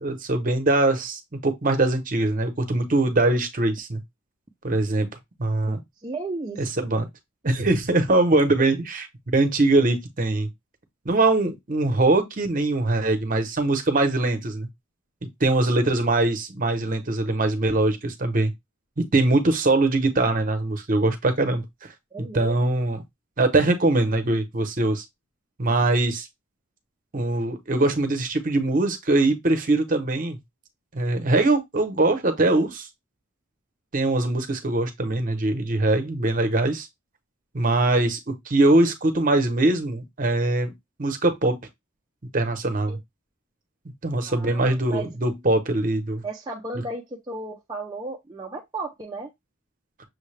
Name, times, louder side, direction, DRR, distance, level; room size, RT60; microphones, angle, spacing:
voice 1, 0.0-4.0 4.6-5.1 5.4-5.8 6.6-7.1 7.4-10.5 11.0-14.7 15.4-18.5 19.0-21.6 22.3-23.0 23.4-25.0 25.6-26.3 27.1-30.4 30.9-32.9 33.9-36.9 37.5-40.7 41.0-41.6 42.3-43.0 44.0-46.2 46.7-46.8, right 2 dB, 40° right, 0.8 m, -22 dB
voice 2, 6.0-6.9 22.1-22.6 42.9-43.0 44.2-45.1 46.2-49.3, right 2 dB, 20° right, 0.5 m, -34 dB
6.4 x 2.2 x 3.2 m
head